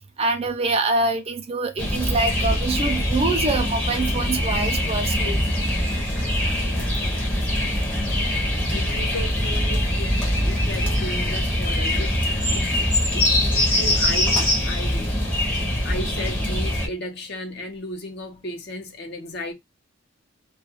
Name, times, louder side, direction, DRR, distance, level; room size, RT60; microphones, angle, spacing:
voice 1, 0.2-5.4, right 3 dB, 30° right, 0.4 m, -25 dB
sound 1, 1.8-16.9, left 1 dB, 10° left, 0.7 m, -23 dB
voice 2, 6.7-7.4 8.6-15.2 15.8-19.5, left 1 dB, 55° left, 0.7 m, -35 dB
2.3 x 2.3 x 2.9 m
head